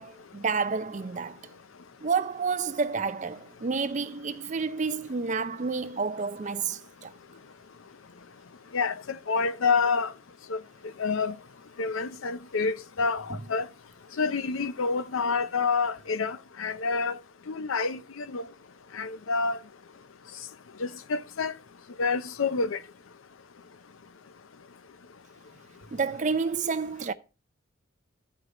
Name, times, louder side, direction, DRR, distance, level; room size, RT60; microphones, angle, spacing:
voice 1, 0.0-1.4 2.0-7.1 25.9-27.1, right 5 dB, 35° right, 0.5 m, -30 dB
voice 2, 9.3-10.1 10.5-10.6 11.0-11.3 11.8-13.7 14.2-17.1 17.5-18.4 18.9-19.6 20.8-21.5 22.0-22.8, left 4 dB, 75° left, 0.6 m, -28 dB
13.5 x 4.7 x 3.7 m
head